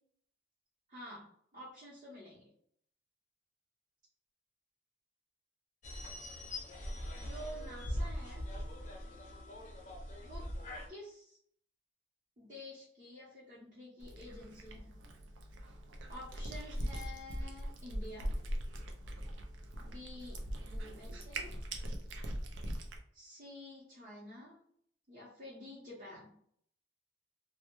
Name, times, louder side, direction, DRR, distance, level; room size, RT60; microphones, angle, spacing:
voice 1, 0.9-2.4 7.1-8.5 10.2-10.6 10.9-11.4 12.4-15.0 16.1-18.4 19.8-21.6 23.1-24.6 25.1-26.3, left 1 dB, 40° right, -8 dB, 0.8 m, -50 dB
sound 1, 5.8-10.9, left 1 dB, 40° left, 0.5 m, -41 dB
Cat, 14.0-23.0, equal, 85° right, 0.5 m, -41 dB
2.2 x 2.1 x 3.0 m, 0.63 s
head